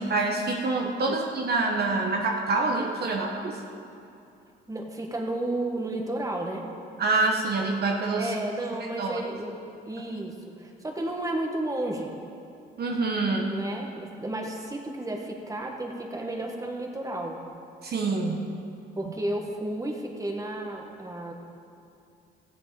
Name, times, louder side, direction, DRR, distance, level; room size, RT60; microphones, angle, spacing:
voice 1, 0.0-3.6 7.0-8.3 9.0-9.2 12.8-13.5 17.8-18.5, right 3 dB, 55° right, 0 dB, 1.2 m, -26 dB
voice 2, 4.7-6.6 8.2-9.5 9.8-12.1 13.5-17.4 18.9-21.3, right 1 dB, 15° right, 1 dB, 1.7 m, -32 dB
16.0 x 7.9 x 5.1 m, 2.6 s
cardioid pair, 90°, 20 cm